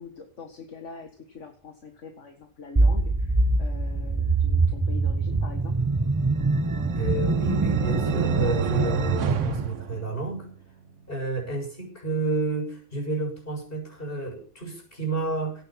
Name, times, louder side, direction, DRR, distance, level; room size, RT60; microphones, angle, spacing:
voice 1, 0.0-5.8, left 4 dB, 75° left, 6 dB, 2.0 m, -43 dB
sound 1, 2.8-9.6, right 3 dB, 20° right, 0.7 m, -24 dB
sound 2, 6.1-10.6, right 7 dB, 80° right, 1.4 m, -30 dB
voice 2, 6.9-10.5 11.1-15.6, right 3 dB, 45° left, 2 dB, 6.9 m, -30 dB
17.5 x 10.0 x 5.8 m, 0.41 s
omnidirectional pair, 1.3 m